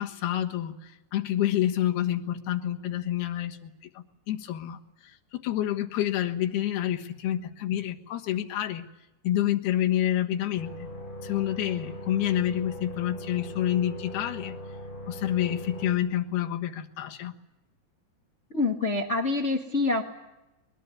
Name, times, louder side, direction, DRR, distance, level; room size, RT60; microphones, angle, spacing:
voice 1, 0.0-8.9 9.2-10.9 11.2-14.6 15.1-17.3, left 12 dB, 80° left, 4 dB, 3.5 m, -28 dB
sound 1, 10.6-15.9, left 1 dB, 40° left, 6.0 m, -40 dB
voice 2, 18.5-20.0, left 3 dB, 60° left, 4 dB, 0.7 m, -26 dB
22.5 x 22.0 x 9.5 m, 0.95 s
omnidirectional pair, 4.5 m